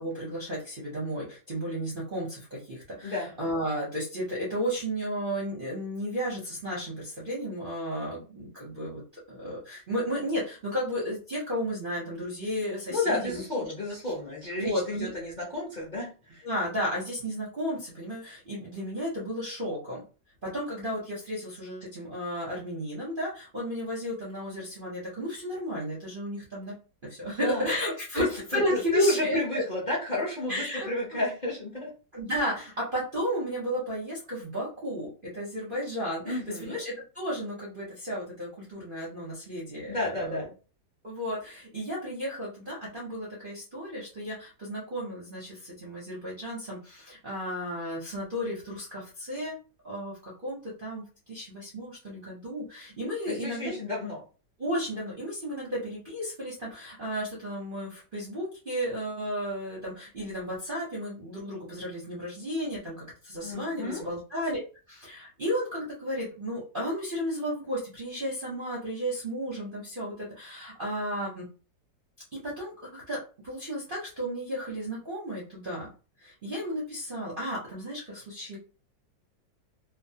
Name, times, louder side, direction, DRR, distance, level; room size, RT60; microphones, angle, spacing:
voice 1, 0.0-9.0 9.3-13.7 14.6-15.1 16.4-20.0 20.5-26.7 27.1-29.6 30.5-30.9 32.1-40.5 41.0-49.6 49.8-53.7 54.6-64.6 64.9-71.4 72.6-75.9 76.2-78.6, equal, 45° right, -5 dB, 0.7 m, -33 dB
voice 2, 12.9-16.4 27.2-27.7 28.2-28.3 28.5-31.9 36.2-36.8 39.9-40.5 53.3-54.2 63.4-64.1, left 2 dB, 35° left, -4 dB, 0.7 m, -31 dB
2.9 x 2.3 x 2.7 m, 0.35 s
omnidirectional pair, 2.0 m